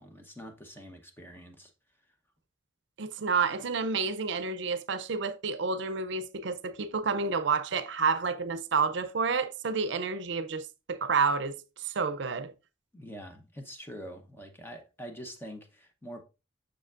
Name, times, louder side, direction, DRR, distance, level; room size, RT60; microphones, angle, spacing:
voice 1, 0.0-1.7 12.9-16.2, equal, 10° left, 0.8 m, -45 dB
voice 2, 3.0-12.5, right 5 dB, 70° right, 0.5 m, -29 dB
6.9 x 6.4 x 2.4 m
head